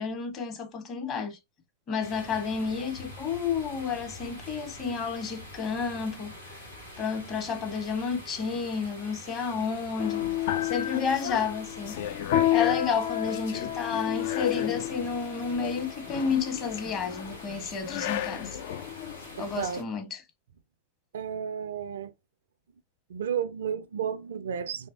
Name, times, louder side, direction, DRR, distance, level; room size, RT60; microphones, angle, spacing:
voice 1, 0.0-1.4 1.9-6.3 7.0-10.2 10.5-12.0 12.5-18.5 19.4-20.2, left 5 dB, 30° left, 1.1 m, -31 dB
sound 1, 2.0-19.8, left 1 dB, 90° left, 1.6 m, -46 dB
sound 2, 10.0-19.7, left 12 dB, 50° left, 0.4 m, -31 dB
voice 2, 19.4-19.8 21.1-22.1 23.1-24.9, right 8 dB, 65° right, 0.4 m, -33 dB
4.0 x 3.1 x 2.7 m
figure-of-eight pair, 90°, 0 cm